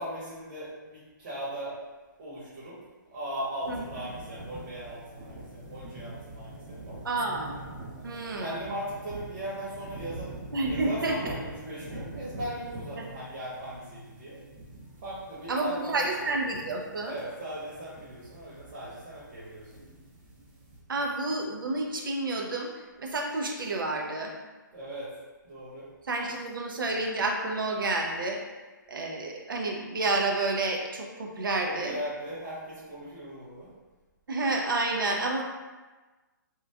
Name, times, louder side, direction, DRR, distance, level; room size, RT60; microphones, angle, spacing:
voice 1, 0.0-1.8 2.2-2.8 3.1-7.0 8.1-14.4 15.0-16.1 17.1-19.7 24.7-25.1 25.4-25.8 31.6-33.7, right 1 dB, 50° right, -9 dB, 1.0 m, -38 dB
sound 1, 3.6-20.8, right 1 dB, 30° right, 0.6 m, -44 dB
voice 2, 7.0-7.5 8.0-8.5 10.5-11.3 13.0-13.1 15.5-17.2 20.9-22.7 23.0-24.3 26.1-28.4 28.9-32.0 34.3-35.4, right 2 dB, 80° right, 1 dB, 0.5 m, -29 dB
3.0 x 2.2 x 2.3 m, 1.2 s
hypercardioid pair, 145°, 11 cm